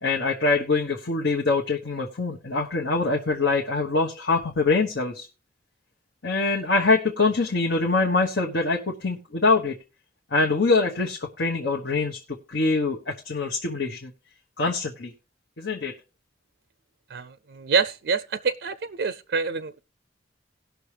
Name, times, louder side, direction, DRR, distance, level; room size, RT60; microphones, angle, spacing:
voice 1, 0.0-5.3 6.2-9.8 10.3-12.2 12.5-14.1 14.6-15.1 15.6-15.9, left 3 dB, 85° left, 1.2 m, -24 dB
voice 2, 17.6-19.8, right 5 dB, 65° right, 0.4 m, -26 dB
18.5 x 6.2 x 3.3 m
head